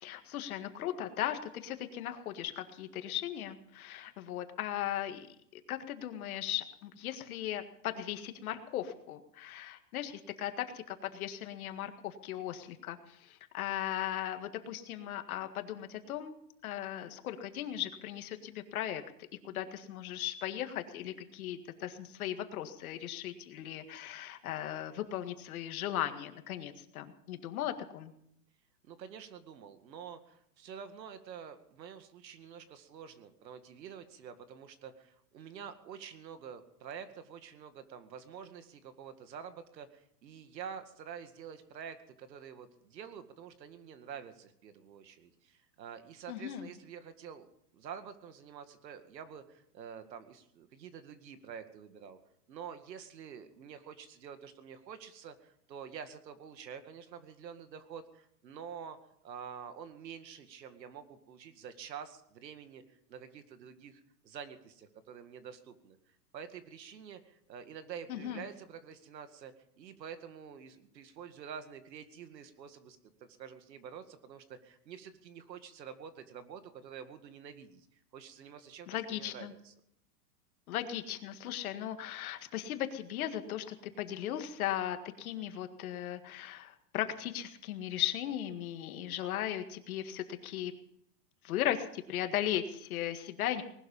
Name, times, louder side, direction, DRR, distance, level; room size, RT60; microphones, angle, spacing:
voice 1, 0.0-5.3 5.5-16.4 16.6-19.0 19.4-28.1 46.3-46.7 68.1-68.4 78.9-79.5 80.7-90.7 91.4-93.6, left 11 dB, 55° left, 8 dB, 1.9 m, -37 dB
voice 2, 28.8-47.5 47.7-52.2 52.5-59.0 59.2-79.7, right 7 dB, 85° right, 10 dB, 2.1 m, -48 dB
19.5 x 12.0 x 5.5 m, 0.72 s
supercardioid pair, 155°, 50 cm